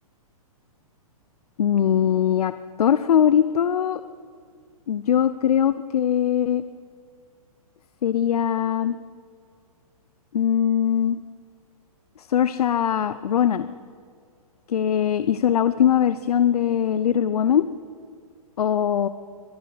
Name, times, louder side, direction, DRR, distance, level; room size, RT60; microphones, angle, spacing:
voice 1, 1.6-2.5 2.8-4.0 4.9-6.6 8.0-9.0 10.3-11.2 12.2-13.7 14.7-17.7 18.6-19.1, left 9 dB, 80° left, 13 dB, 0.6 m, -21 dB
23.0 x 11.0 x 4.0 m, 2.1 s
hypercardioid pair, 135°, 19 cm